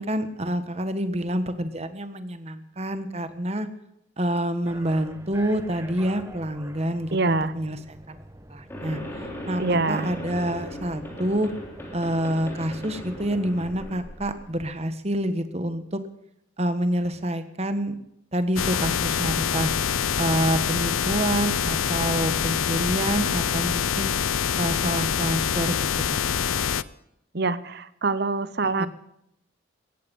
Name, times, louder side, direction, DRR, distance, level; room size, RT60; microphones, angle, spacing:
voice 1, 0.0-3.7 4.2-8.2 8.5-9.0 9.5-11.5 11.9-16.0 16.6-18.0 18.3-19.7 20.2-24.1 24.6-25.8 26.1-26.2 28.8-28.9, right 1 dB, 30° right, 10 dB, 1.4 m, -27 dB
sound 1, 4.7-13.8, right 1 dB, 15° right, 1.3 m, -46 dB
voice 2, 7.1-7.5 9.6-10.1 27.3-28.9, right 3 dB, 55° right, 15 dB, 0.9 m, -25 dB
sound 2, 8.7-14.7, equal, 10° left, 3.6 m, -38 dB
sound 3, 18.6-26.8, left 8 dB, 85° left, 0.6 m, -25 dB
17.0 x 14.5 x 5.4 m, 0.79 s
head